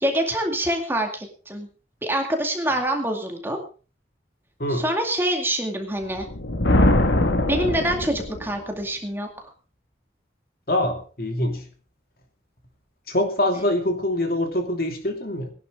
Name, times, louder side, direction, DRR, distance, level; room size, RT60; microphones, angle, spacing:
voice 1, 0.0-1.7 2.0-3.6 4.8-6.3 7.5-9.5, right 1 dB, 10° right, 3 dB, 2.2 m, -25 dB
Thunder, 6.2-8.6, left 1 dB, 90° left, 1.8 m, -21 dB
voice 2, 10.7-11.7 13.1-15.5, left 1 dB, 55° left, 4 dB, 2.8 m, -24 dB
20.0 x 11.0 x 3.7 m, 0.36 s
head